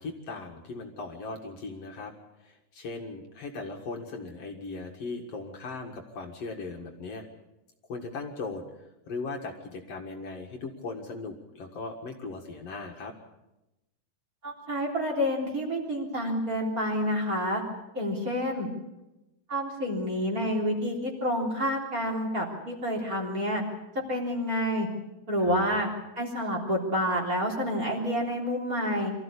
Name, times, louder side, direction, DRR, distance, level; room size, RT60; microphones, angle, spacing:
voice 1, 0.0-2.1 2.4-7.2 7.9-13.1 25.4-25.8, left 3 dB, 55° left, 2 dB, 2.7 m, -38 dB
voice 2, 14.4-17.6 17.9-18.7 19.5-23.6 24.1-24.9 25.3-25.9 26.2-29.1, equal, 30° right, 0 dB, 3.9 m, -28 dB
24.5 x 15.0 x 8.5 m, 0.98 s
omnidirectional pair, 3.4 m